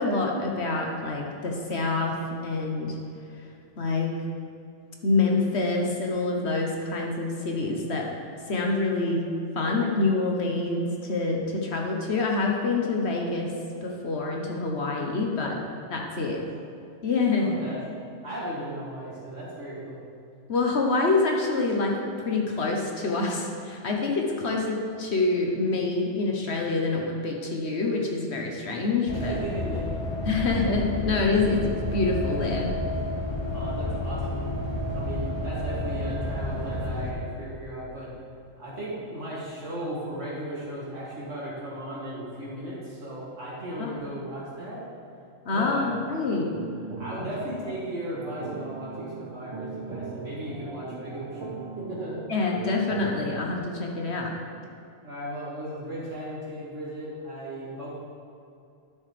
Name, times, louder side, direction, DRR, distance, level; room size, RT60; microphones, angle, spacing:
voice 1, 0.0-2.9 3.8-4.2 5.0-8.1 8.5-9.3 9.5-13.5 13.8-15.6 15.9-16.4 17.0-17.5 20.5-29.4 30.3-32.7 43.8-43.9 45.4-46.5 52.3-54.3, left 3 dB, 55° left, 0 dB, 1.2 m, -26 dB
voice 2, 17.4-17.8 18.2-20.0 29.3-29.9 33.5-34.5 34.9-38.1 38.6-44.8 45.5-45.9 47.0-51.5 51.8-52.2 55.0-58.0, right 1 dB, 65° right, -8 dB, 2.9 m, -36 dB
sound 1, 29.1-37.1, left 1 dB, 25° left, 0.8 m, -30 dB
sound 2, 45.9-53.6, right 4 dB, 25° right, 0.7 m, -39 dB
12.5 x 6.6 x 3.3 m, 2.5 s
omnidirectional pair, 1.4 m